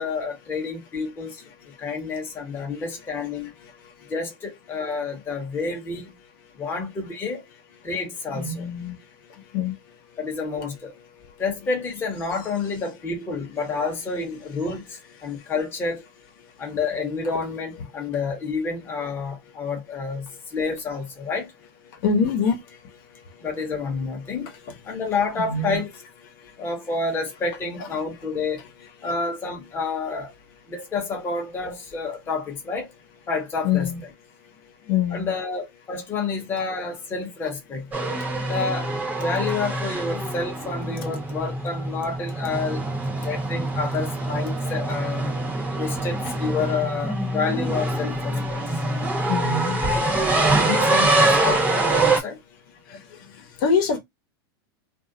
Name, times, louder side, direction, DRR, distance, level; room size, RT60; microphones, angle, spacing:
voice 1, 0.0-1.4 1.8-3.5 4.1-6.1 6.6-7.4 7.8-8.7 10.2-10.9 11.4-16.0 16.6-21.5 23.4-24.5 24.9-25.9 26.6-28.6 29.0-30.3 30.7-32.9 33.3-33.9 35.1-37.8 38.5-38.9 39.2-42.8 43.2-45.3 45.7-48.6 50.1-52.4, left 4 dB, 15° left, 0.9 m, -29 dB
voice 2, 8.3-9.0 9.5-9.7 22.0-22.6 25.4-25.8 27.8-27.9 33.6-34.0 34.9-35.3 49.3-49.8 50.8-51.0 53.6-54.0, left 5 dB, 60° left, 0.9 m, -24 dB
sound 1, 37.9-52.2, right 2 dB, 10° right, 0.8 m, -24 dB
2.5 x 2.0 x 3.7 m
supercardioid pair, 145°, 13 cm